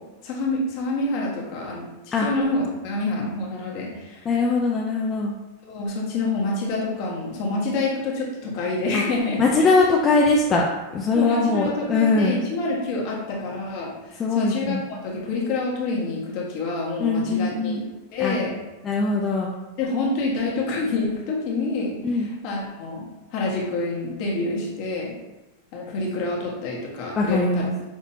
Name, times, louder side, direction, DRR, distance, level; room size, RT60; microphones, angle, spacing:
voice 1, 0.2-4.3 5.6-9.7 11.1-17.8 18.1-18.5 19.8-25.2 25.7-27.7, left 3 dB, 50° left, -3 dB, 1.4 m, -27 dB
voice 2, 4.3-5.3 8.9-9.0 9.4-10.7 10.9-12.4 14.2-14.8 17.0-17.8 18.2-18.4 18.8-19.5 22.0-22.3 27.2-27.7, left 3 dB, 20° left, -2 dB, 0.5 m, -21 dB
6.1 x 2.8 x 2.8 m, 1.1 s
supercardioid pair, 140°, 0 cm